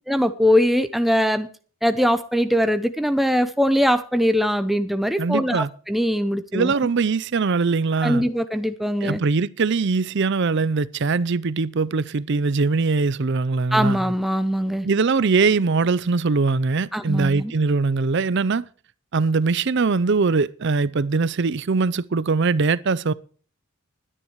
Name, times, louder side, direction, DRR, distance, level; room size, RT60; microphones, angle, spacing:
voice 1, 0.1-1.5 1.8-6.7 8.0-9.2 13.7-14.9 16.9-17.5, equal, ahead, 0.6 m, -21 dB
voice 2, 5.2-5.7 6.5-8.3 9.0-14.0 14.8-18.7 19.1-23.1, right 4 dB, 55° right, 0.5 m, -21 dB
21.0 x 10.0 x 3.1 m
head